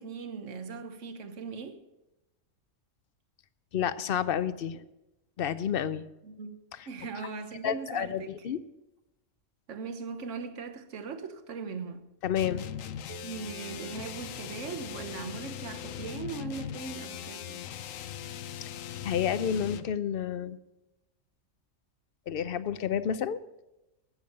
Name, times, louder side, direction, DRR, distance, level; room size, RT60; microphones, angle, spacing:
voice 1, 0.0-1.8 6.2-6.6 6.9-8.4 9.7-12.0 13.1-17.7, right 5 dB, 70° right, 1.4 m, -39 dB
voice 2, 3.7-4.8 5.4-6.0 7.6-8.6 12.2-12.7 19.0-20.6 22.3-23.4, left 8 dB, 55° left, 0.7 m, -30 dB
sound 1, 12.3-20.0, left 10 dB, 90° left, 1.1 m, -40 dB
16.5 x 7.2 x 6.5 m
omnidirectional pair, 1.3 m